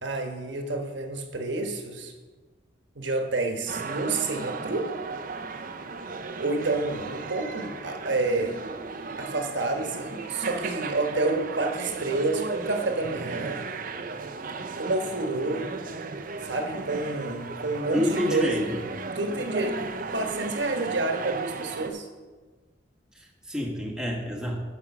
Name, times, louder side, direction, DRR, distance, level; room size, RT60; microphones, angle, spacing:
voice 1, 0.0-2.1 3.0-4.9 6.4-8.6 9.2-13.6 14.8-15.7 16.4-18.7 19.1-19.8 20.1-22.1, right 2 dB, 80° right, 4 dB, 1.3 m, -29 dB
sound 1, 3.7-21.9, right 4 dB, 50° right, 0.6 m, -35 dB
voice 2, 17.9-18.8 23.1-24.6, left 1 dB, 5° right, -1 dB, 1.4 m, -28 dB
9.9 x 6.2 x 6.0 m, 1.3 s
head